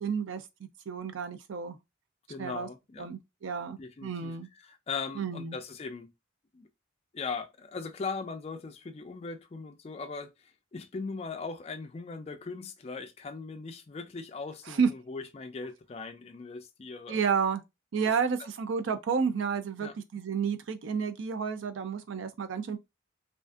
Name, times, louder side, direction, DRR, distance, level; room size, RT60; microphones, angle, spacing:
voice 1, 0.0-1.8 2.4-2.7 3.0-4.5 5.2-5.6 14.7-14.9 17.1-17.6 17.9-22.8, right 6 dB, 75° right, 0.4 m, -31 dB
voice 2, 2.3-3.1 3.8-4.3 4.7-6.1 6.5-6.7 7.1-17.2 19.8-20.0, left 4 dB, 30° left, 0.3 m, -39 dB
2.4 x 2.4 x 2.4 m
head